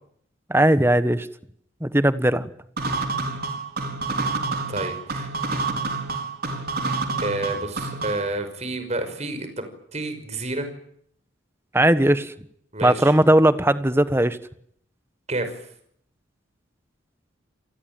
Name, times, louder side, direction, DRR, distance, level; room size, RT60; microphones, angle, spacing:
voice 1, 0.5-1.3 1.8-2.5 11.7-12.3 12.8-14.4, right 1 dB, 15° right, 13 dB, 1.3 m, -18 dB
sound 1, 2.8-8.3, right 3 dB, 55° right, 4.7 m, -28 dB
voice 2, 4.7-5.3 7.2-9.6 9.9-10.7 12.7-13.2 15.3-15.5, right 2 dB, 35° right, 9 dB, 5.7 m, -29 dB
28.5 x 20.0 x 9.1 m, 0.68 s
head